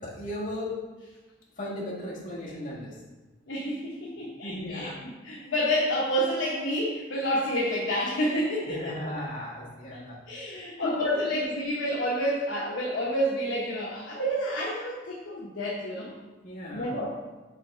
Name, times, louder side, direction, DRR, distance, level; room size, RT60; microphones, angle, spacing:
voice 1, 0.0-0.8 1.6-3.0 4.4-5.0 8.6-10.2 10.8-11.0 11.3-11.5 16.4-17.0, left 1 dB, 45° left, -7 dB, 1.8 m, -36 dB
voice 2, 3.5-8.9 9.9-10.0 10.3-16.1 16.7-17.1, equal, 70° left, -6 dB, 1.0 m, -29 dB
6.0 x 3.7 x 4.3 m, 1.2 s
head